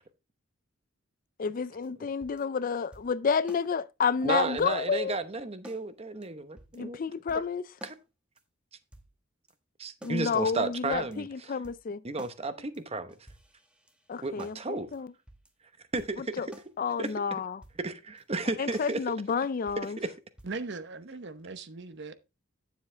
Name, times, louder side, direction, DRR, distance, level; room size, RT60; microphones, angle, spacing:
voice 1, 1.4-5.2 6.8-7.6 10.0-11.0 11.3-12.0 14.1-15.1 16.4-16.5 16.8-17.6 18.6-20.0, left 6 dB, 40° left, 0.4 m, -30 dB
sound 1, 1.8-1.9 2.2-2.4 2.9-3.1 3.5-3.7 4.0-4.1 4.6-4.8 5.1-5.2 5.6-5.8 6.2-6.3 6.6-6.8 7.3-7.5 7.8-8.0 8.4-8.5 8.9-9.1 9.5-9.6 10.0-10.2 10.6-10.7 10.9-11.2 11.6-11.8 12.2-12.4 12.7-12.8 13.1-14.6 14.9-15.0 15.3-15.5 16.0-16.2 16.5-16.7 17.1-17.2 17.6-17.8 18.2-18.3 18.7-18.9 19.3-19.4 19.7-19.9 20.4-20.6, equal, 5° right, 1.0 m, -51 dB
voice 2, 4.2-7.0 7.3-7.4 7.8-7.9 9.8-11.6 12.0-13.2 14.2-14.9 15.9-16.4 17.0-17.4 17.8-19.0 19.8-20.1, right 3 dB, 30° right, 0.9 m, -33 dB
voice 3, 20.4-22.1, right 3 dB, 55° right, 0.9 m, -39 dB
9.7 x 7.3 x 3.3 m
head